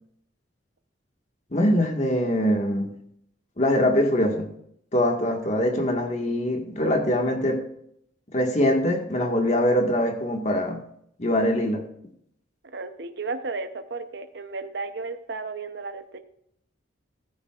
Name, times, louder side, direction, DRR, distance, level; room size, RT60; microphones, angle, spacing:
voice 1, 1.5-2.9 3.6-4.5 4.9-7.6 8.3-10.8 11.2-11.8, left 1 dB, 35° left, 3 dB, 1.8 m, -23 dB
voice 2, 12.7-16.2, right 3 dB, 60° right, 7 dB, 0.9 m, -34 dB
19.5 x 10.5 x 2.5 m, 0.71 s
head